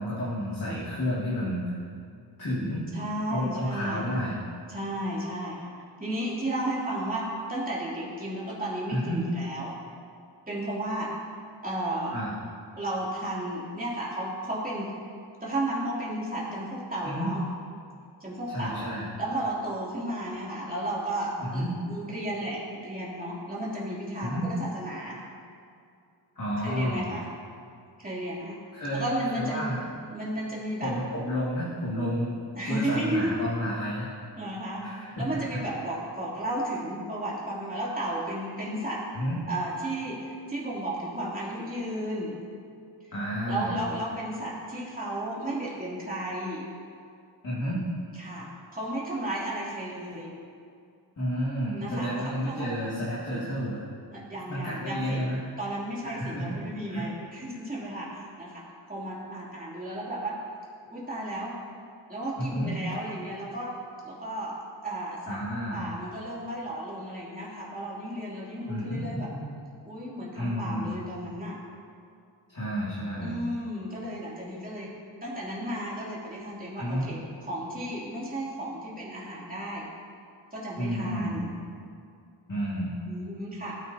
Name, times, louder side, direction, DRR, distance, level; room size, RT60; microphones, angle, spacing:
voice 1, 0.0-1.8 2.4-2.9 3.3-4.4 8.9-9.2 12.1-12.4 17.0-17.3 18.5-19.1 21.4-21.7 24.2-24.5 26.4-27.1 28.7-29.9 30.8-32.4 32.7-34.1 34.8-35.1 35.5-35.6 39.1-39.4 43.1-43.8 47.4-47.8 51.2-53.8 54.5-55.5 56.0-56.6 56.9-57.1 62.4-62.7 65.3-65.9 68.6-69.5 70.3-70.9 72.5-73.4 76.7-77.1 80.8-81.4 82.5-83.0, equal, 45° left, -9 dB, 2.5 m, -31 dB
voice 2, 2.9-4.1 4.7-5.7 6.0-9.8 10.5-11.1 11.6-12.2 12.8-15.0 15.4-17.4 18.2-18.9 19.2-25.2 26.6-27.3 28.0-28.6 28.9-29.7 30.1-30.9 32.6-33.4 34.4-34.8 35.2-39.0 39.5-42.4 43.5-46.7 48.2-50.3 51.7-52.7 54.1-55.2 55.6-60.4 60.9-61.6 62.1-63.8 64.0-64.6 64.8-65.4 65.7-69.3 69.8-71.6 73.2-74.9 75.2-79.9 80.5-81.5 83.0-83.7, right 1 dB, 20° right, -6 dB, 3.1 m, -33 dB
17.0 x 9.2 x 2.9 m, 2.4 s
wide cardioid pair, 95°, 43 cm